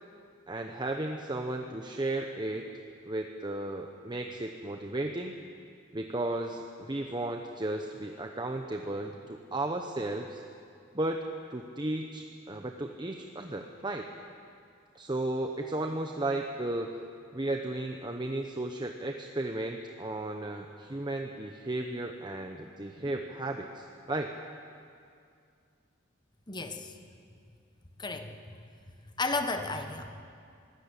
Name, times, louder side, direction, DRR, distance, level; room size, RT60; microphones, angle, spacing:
voice 1, 0.5-2.6 3.0-5.3 5.9-10.4 10.9-11.2 11.5-14.1 14.9-17.0 17.3-24.3, right 2 dB, 25° right, 3 dB, 0.9 m, -34 dB
voice 2, 26.5-26.9 28.0-28.5 29.2-30.2, left 3 dB, 20° left, 7 dB, 1.3 m, -33 dB
23.0 x 16.5 x 8.3 m, 2.4 s
head